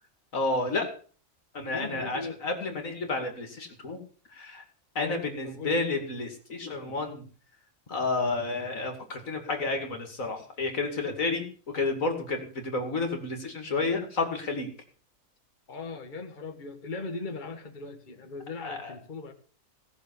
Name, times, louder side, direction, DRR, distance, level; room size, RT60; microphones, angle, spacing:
voice 1, 0.3-0.9 1.5-4.0 4.3-4.6 4.9-7.2 7.9-14.7 18.6-18.9, left 3 dB, 75° left, 4 dB, 2.8 m, -31 dB
voice 2, 1.7-2.4 5.0-5.8 11.3-11.4 15.7-19.3, left 3 dB, 35° left, 4 dB, 1.7 m, -39 dB
17.0 x 6.9 x 7.1 m, 0.43 s
omnidirectional pair, 1.4 m